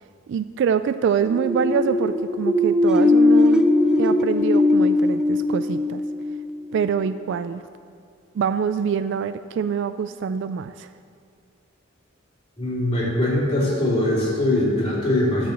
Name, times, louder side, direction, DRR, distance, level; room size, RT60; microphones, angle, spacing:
voice 1, 0.3-3.6 4.0-6.0 6.7-7.6 8.3-10.9, right 7 dB, 65° right, 12 dB, 0.3 m, -25 dB
sound 1, 1.2-6.9, left 2 dB, 5° right, 0.5 m, -19 dB
voice 2, 12.6-15.5, left 1 dB, 25° left, -9 dB, 2.8 m, -22 dB
12.5 x 4.8 x 7.0 m, 2.3 s
head